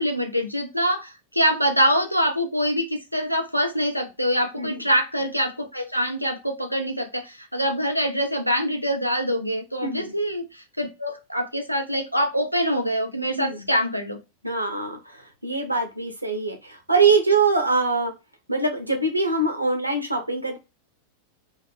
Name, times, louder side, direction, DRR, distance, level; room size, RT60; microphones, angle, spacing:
voice 1, 0.0-14.2, equal, 90° left, 5 dB, 0.4 m, -24 dB
voice 2, 9.8-10.1 13.3-13.6 14.4-18.1 18.5-20.6, right 4 dB, 85° right, 3 dB, 0.6 m, -23 dB
2.4 x 2.1 x 3.2 m, 0.26 s
figure-of-eight pair, 90°, 0 cm